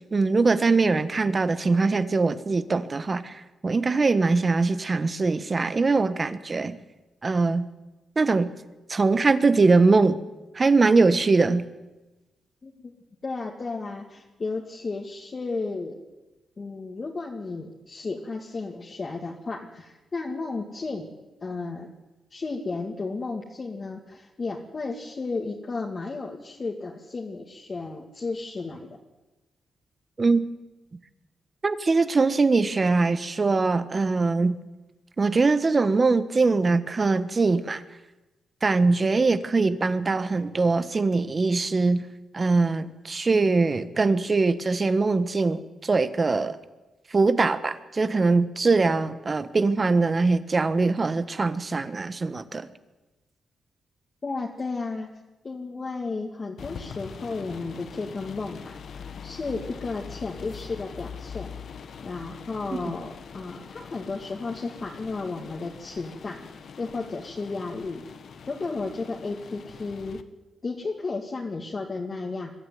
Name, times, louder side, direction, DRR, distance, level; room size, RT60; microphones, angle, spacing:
voice 1, 0.1-6.8 7.2-7.7 8.1-8.5 8.9-10.2 10.5-11.6 30.2-30.5 31.6-34.5 35.2-37.8 38.6-42.0 42.3-46.6 47.1-52.7, right 3 dB, 35° right, 13 dB, 1.4 m, -22 dB
voice 2, 12.6-12.9 13.2-16.0 16.6-21.1 21.4-21.9 22.3-29.0 54.2-55.1 55.4-61.5 62.0-66.4 66.8-68.0 68.5-70.2 70.6-72.5, left 3 dB, 35° left, -1 dB, 2.3 m, -33 dB
sound 1, 56.6-70.2, left 6 dB, 65° left, 1.3 m, -42 dB
23.0 x 13.0 x 9.5 m, 1.1 s
cardioid pair, 90°, 0 cm